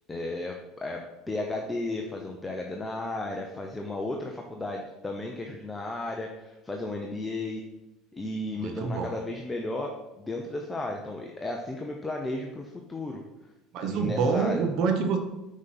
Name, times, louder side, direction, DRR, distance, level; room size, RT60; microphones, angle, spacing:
voice 1, 0.1-7.6 8.1-13.2 13.8-14.6, left 2 dB, 15° left, 1 dB, 0.8 m, -34 dB
voice 2, 8.6-9.2 13.7-15.2, right 5 dB, 55° right, 5 dB, 1.2 m, -26 dB
6.3 x 5.3 x 6.0 m, 0.99 s
supercardioid pair, 120°, 0 cm